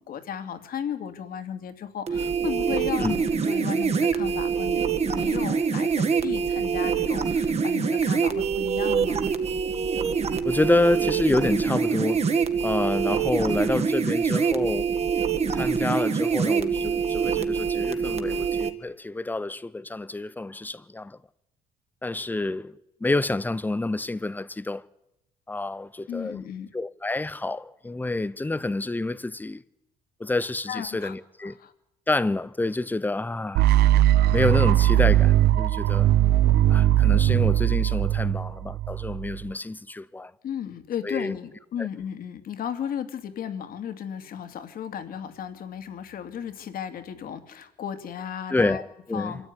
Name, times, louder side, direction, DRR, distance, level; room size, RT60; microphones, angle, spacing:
voice 1, 0.0-9.2 26.1-26.7 30.7-31.2 31.4-31.7 40.4-48.8 49.1-49.5, left 8 dB, 60° left, 2.8 m, -35 dB
sound 1, 2.1-18.7, right 6 dB, 40° right, 2.1 m, -25 dB
voice 2, 10.4-12.2 12.6-14.9 15.5-21.2 22.0-22.7 23.0-24.8 25.5-26.5 26.7-29.6 30.2-31.5 32.1-33.7 34.3-36.1 36.7-40.3 41.0-41.4 41.8-41.9 48.5-49.4, left 2 dB, 10° left, 0.9 m, -28 dB
sound 2, 33.5-39.5, right 13 dB, 70° right, 0.8 m, -20 dB
25.5 x 14.0 x 10.0 m
cardioid pair, 110°, 17 cm